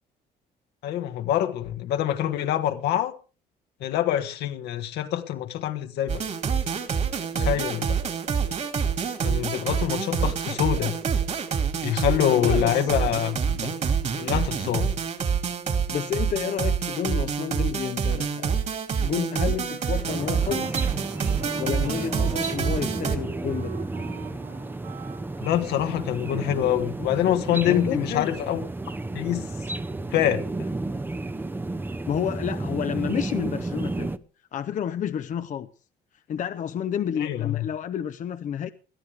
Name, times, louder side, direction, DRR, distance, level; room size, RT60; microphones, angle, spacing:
voice 1, 0.8-3.1 3.8-6.2 7.4-8.0 9.2-11.0 11.8-13.7 14.2-14.9 25.4-28.6 29.1-29.4 30.1-30.4 37.2-37.6, left 11 dB, 75° left, 1.7 m, -25 dB
sound 1, 6.1-23.2, right 6 dB, 45° right, 2.5 m, -27 dB
voice 2, 7.3-7.9 12.4-12.8 15.9-18.6 19.0-20.8 21.6-23.7 27.6-28.3 32.1-34.1 34.5-35.7 36.3-38.7, left 9 dB, 50° left, 0.8 m, -30 dB
Wind instrument woodwind instrument, 19.7-26.8, right 8 dB, 80° right, 5.9 m, -44 dB
sound 2, 20.0-34.2, right 2 dB, 10° right, 0.8 m, -32 dB
21.0 x 13.5 x 3.5 m
cardioid pair, 110°, 17 cm